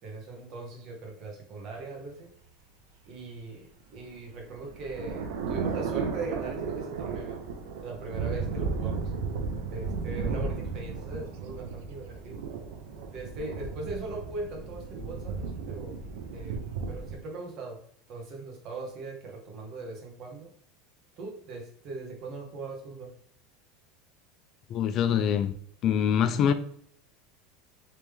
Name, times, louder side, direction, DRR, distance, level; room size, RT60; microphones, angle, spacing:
voice 1, 0.0-2.3 3.1-7.4 7.8-9.1 9.7-12.4 13.1-16.0 16.3-16.6 16.9-17.8 18.1-20.5 21.2-23.1, right 3 dB, 45° right, 1.1 m, -40 dB
sound 1, 4.0-17.1, right 5 dB, 80° right, 0.6 m, -34 dB
voice 2, 24.7-25.5 25.8-26.5, left 8 dB, 40° left, 0.3 m, -24 dB
3.3 x 3.1 x 3.3 m
supercardioid pair, 135°, 0 cm